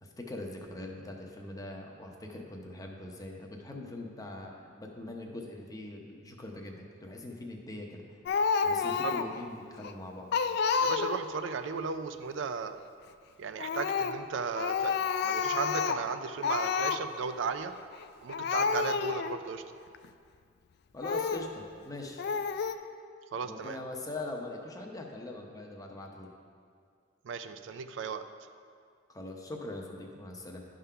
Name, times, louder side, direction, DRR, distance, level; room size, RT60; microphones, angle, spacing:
voice 1, 0.0-8.0 8.6-10.3 20.9-22.3 23.4-26.3 29.1-30.6, left 2 dB, 20° left, 1 dB, 0.8 m, -42 dB
Speech, 8.3-9.4 9.8-9.9 10.3-11.4 13.6-14.2 14.6-16.1 16.4-17.0 17.9-18.0 18.3-19.4 19.9-20.1 21.0-21.5 22.2-22.7, left 5 dB, 55° left, 0.3 m, -29 dB
voice 2, 10.8-12.8 13.4-17.7 18.2-19.6 23.3-23.8 27.2-28.2, right 5 dB, 75° right, 10 dB, 0.4 m, -35 dB
11.0 x 3.7 x 5.6 m, 2.2 s
head